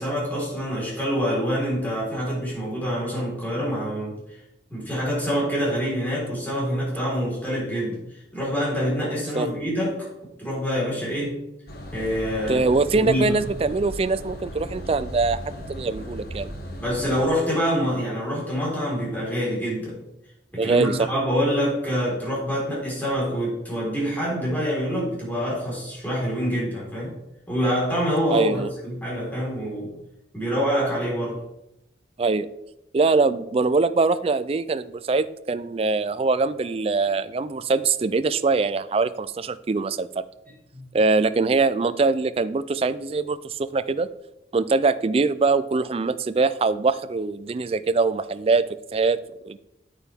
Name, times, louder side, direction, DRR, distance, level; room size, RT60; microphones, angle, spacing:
voice 1, 0.0-4.4 4.7-10.1 10.4-11.4 11.9-12.7 13.0-13.4 16.8-20.0 20.5-27.2 27.5-29.9 30.3-31.4 40.7-40.9, equal, 10° left, -6 dB, 4.0 m, -26 dB
sound 1, 11.7-17.3, equal, 55° left, 1.5 m, -36 dB
voice 2, 12.5-15.4 15.7-16.5 20.6-21.1 28.3-28.7 32.2-32.5 32.9-40.2 40.9-44.1 44.5-48.7 48.9-49.2 49.4-49.6, right 3 dB, 35° right, 14 dB, 0.3 m, -23 dB
9.0 x 8.9 x 3.5 m, 0.88 s
head